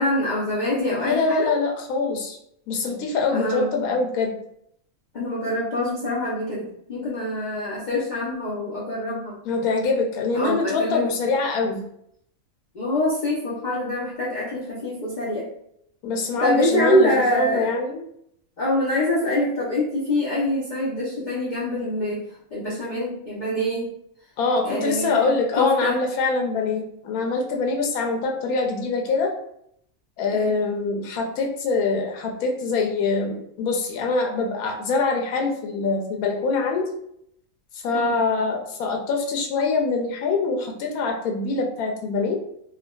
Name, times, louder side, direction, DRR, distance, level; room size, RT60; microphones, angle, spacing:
voice 1, 0.0-1.6 3.3-3.7 5.1-9.3 10.3-11.1 12.7-15.5 16.4-17.7 18.6-22.2 22.5-23.9 24.6-26.0 30.3-30.6 37.9-38.2, left 1 dB, 55° left, -6 dB, 0.5 m, -25 dB
voice 2, 0.9-2.4 2.7-4.4 9.4-11.8 16.0-18.0 24.4-29.3 30.2-36.9 37.7-42.4, left 4 dB, 85° left, 2 dB, 1.1 m, -24 dB
3.5 x 2.2 x 2.2 m, 0.73 s
omnidirectional pair, 1.5 m